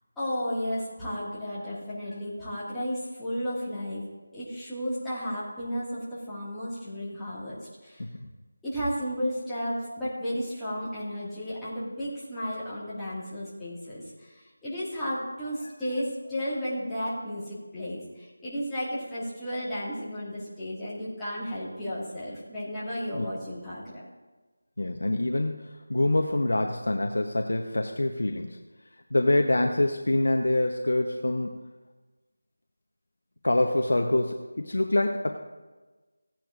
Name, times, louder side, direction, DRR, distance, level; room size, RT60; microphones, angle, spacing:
voice 1, 0.2-4.0 4.3-8.0 8.6-24.0, equal, 5° left, -13 dB, 1.8 m, -33 dB
voice 2, 24.8-25.6 25.9-28.6 29.1-31.6 33.4-35.4, left 1 dB, 75° left, 4 dB, 0.8 m, -25 dB
16.0 x 10.0 x 2.5 m, 1.2 s
figure-of-eight pair, 175°, 0 cm